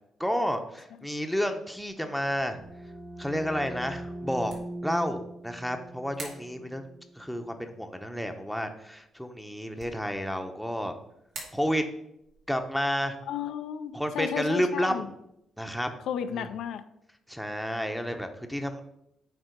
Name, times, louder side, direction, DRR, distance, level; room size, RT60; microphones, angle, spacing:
voice 1, 0.2-2.6 3.2-4.5 4.8-6.9 7.2-10.9 11.5-11.8 12.5-13.2 13.9-15.1 15.6-15.9 16.3-16.5 17.3-18.8, equal, ahead, 5 dB, 0.9 m, -30 dB
sound 1, 1.8-15.9, right 3 dB, 75° right, 2.4 m, -52 dB
sound 2, 2.1-7.6, right 1 dB, 35° right, 1.8 m, -41 dB
voice 2, 13.3-15.1 16.1-16.8, left 9 dB, 80° left, 9 dB, 0.4 m, -33 dB
8.9 x 3.7 x 5.2 m, 0.80 s
cardioid pair, 90°, 0 cm